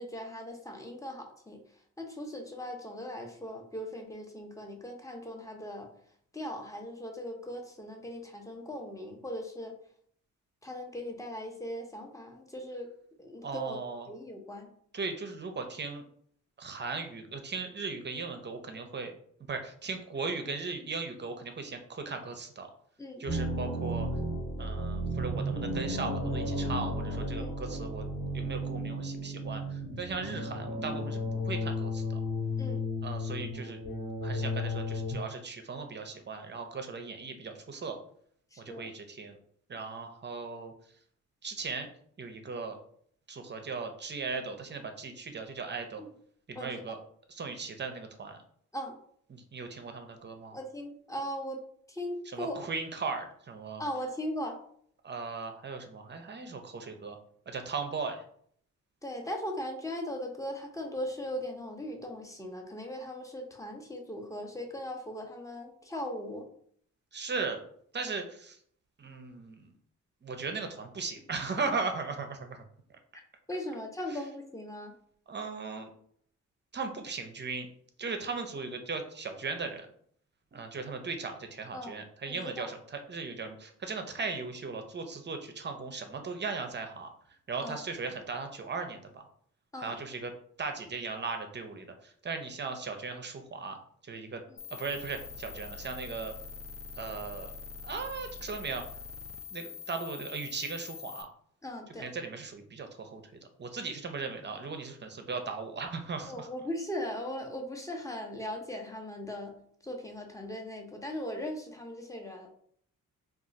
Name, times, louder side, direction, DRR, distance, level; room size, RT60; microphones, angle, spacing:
voice 1, 0.0-1.6 2.0-5.9 6.3-9.7 10.6-12.9 13.2-14.7 23.0-23.2 27.4-27.5 32.6-32.8 38.5-38.9 46.0-46.1 46.5-47.0 48.7-48.9 50.5-51.6 51.9-52.7 53.8-54.5 59.0-66.4 73.5-74.9 81.7-82.0 82.3-82.7 87.6-87.8 89.7-90.0 94.5-94.6 101.6-102.1 106.3-109.5 109.8-112.5, left 1 dB, 10° left, 2 dB, 0.7 m, -39 dB
voice 2, 13.4-14.1 14.9-16.0 16.6-19.1 19.5-22.7 23.2-24.1 24.6-28.1 28.3-32.2 33.0-33.8 34.2-38.0 38.6-39.4 39.7-40.7 41.4-41.9 42.2-42.8 43.3-46.0 46.5-47.0 47.3-48.4 49.3-50.6 52.3-53.8 55.0-57.2 57.5-58.2 67.1-67.6 67.9-68.6 69.0-69.7 70.2-72.6 74.1-74.2 75.3-75.9 76.7-77.7 78.0-79.9 80.5-89.3 89.8-90.3 90.6-93.8 94.0-94.4 94.7-96.3 96.9-97.5 97.8-98.8 99.5-101.3 102.0-106.5, right 4 dB, 35° right, 6 dB, 0.5 m, -37 dB
sound 1, 23.3-35.2, left 1 dB, 65° left, 1.4 m, -33 dB
sound 2, 94.6-101.2, left 5 dB, 45° left, 0.6 m, -44 dB
2.3 x 2.3 x 3.9 m, 0.63 s
cardioid pair, 70°, 32 cm